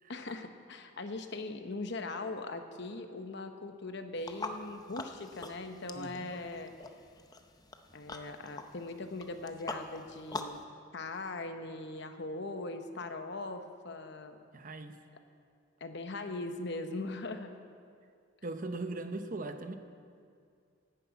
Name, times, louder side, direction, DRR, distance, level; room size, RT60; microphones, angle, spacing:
voice 1, 0.1-6.7 7.9-10.6 10.9-14.4 15.8-17.5, left 2 dB, 55° left, 7 dB, 0.9 m, -40 dB
sound 1, 4.2-10.6, left 3 dB, 20° left, 0.6 m, -44 dB
voice 2, 5.9-6.3 14.5-15.0 18.4-19.7, right 2 dB, 40° right, 8 dB, 0.8 m, -39 dB
11.5 x 9.8 x 8.2 m, 2.3 s
head